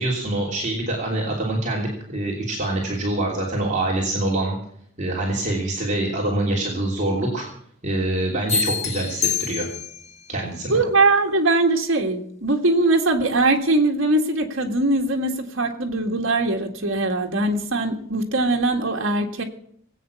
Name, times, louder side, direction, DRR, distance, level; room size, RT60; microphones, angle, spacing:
voice 1, 0.0-4.6 5.0-7.4 7.8-9.7 10.3-10.8, right 1 dB, 35° right, 3.1 m, -25 dB
sound 1, 8.5-10.1, left 7 dB, 35° left, 1.1 m, -26 dB
voice 2, 10.7-19.4, right 2 dB, 65° right, 2.0 m, -21 dB
19.5 x 8.7 x 7.1 m
head